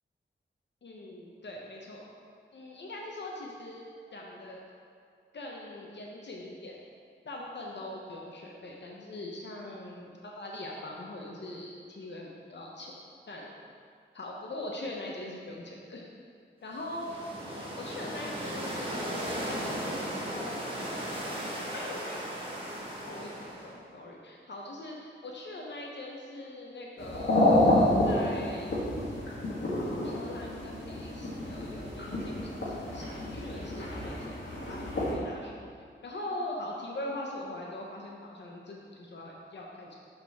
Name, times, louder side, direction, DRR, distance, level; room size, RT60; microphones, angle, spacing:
voice 1, 0.8-2.1 2.5-4.6 5.3-6.8 7.2-12.9 13.3-13.5 14.1-16.1 16.6-17.1 17.8-20.7 21.7-22.2 23.1-28.7 30.0-35.5 36.0-40.0, left 1 dB, 65° left, -2 dB, 0.8 m, -42 dB
sound 1, 16.7-23.8, equal, 25° right, 1.4 m, -36 dB
sound 2, 27.0-35.1, left 1 dB, 85° left, 1.8 m, -29 dB
6.5 x 6.4 x 3.5 m, 2.2 s
wide cardioid pair, 110°, 20 cm